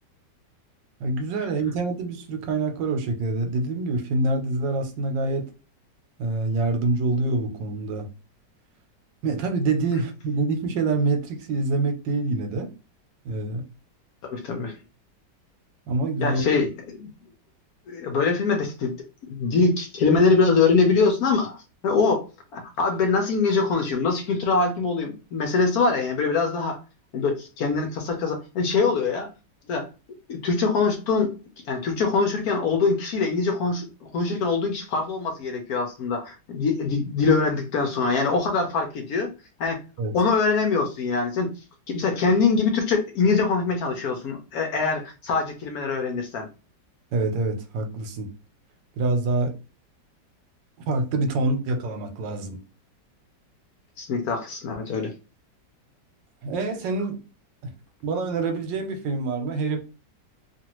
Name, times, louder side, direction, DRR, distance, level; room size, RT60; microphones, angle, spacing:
voice 1, 1.0-5.5 6.2-8.1 9.2-12.7 13.2-13.6 15.9-16.4 40.0-40.1 47.1-48.3 49.0-49.5 50.9-52.6 56.4-57.2 57.6-57.7 58.0-59.8, right 3 dB, 80° right, 1.4 m, -26 dB
voice 2, 14.2-14.8 16.2-17.1 17.9-18.9 19.3-22.3 22.5-26.8 27.1-29.3 29.7-29.9 30.3-31.3 31.7-39.3 39.6-39.8 40.1-41.5 41.9-46.5 54.0-55.1, left 4 dB, 65° left, 1.0 m, -23 dB
2.9 x 2.5 x 2.9 m
omnidirectional pair, 1.9 m